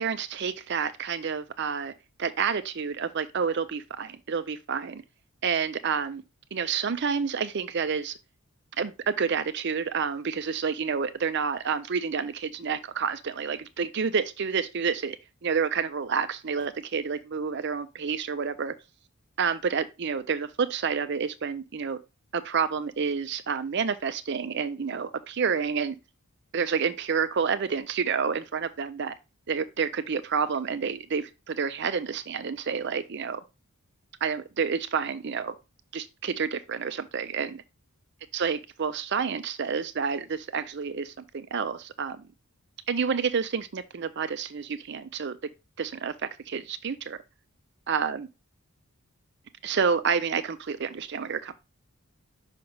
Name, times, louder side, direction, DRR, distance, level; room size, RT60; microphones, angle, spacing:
voice 1, 0.0-1.9 2.2-5.0 5.4-6.2 6.5-8.2 8.8-15.2 15.4-18.7 19.4-22.0 22.3-26.0 26.5-29.1 29.5-33.4 34.2-35.5 35.9-37.6 38.3-42.3 42.9-45.4 45.8-47.2 47.9-48.3 49.6-51.5, right 6 dB, 50° right, 0.5 m, -29 dB
5.8 x 3.4 x 5.3 m
head